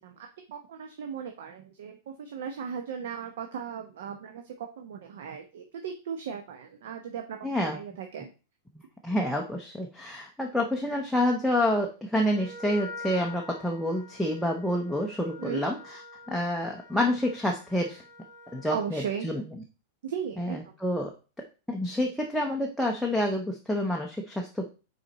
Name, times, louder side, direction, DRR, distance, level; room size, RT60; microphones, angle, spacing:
voice 1, 0.0-1.9 2.2-8.3 15.4-15.6 18.7-19.3 20.0-20.7, right 7 dB, 65° right, 4 dB, 0.8 m, -37 dB
voice 2, 7.4-7.8 8.7-16.0 16.3-18.0 18.5-19.4 20.4-21.1 21.7-24.7, left 1 dB, ahead, -1 dB, 0.5 m, -28 dB
Wind instrument woodwind instrument, 12.3-19.0, left 3 dB, 40° right, 1.5 m, -46 dB
6.4 x 4.3 x 4.0 m, 0.34 s
supercardioid pair, 180°, 0 cm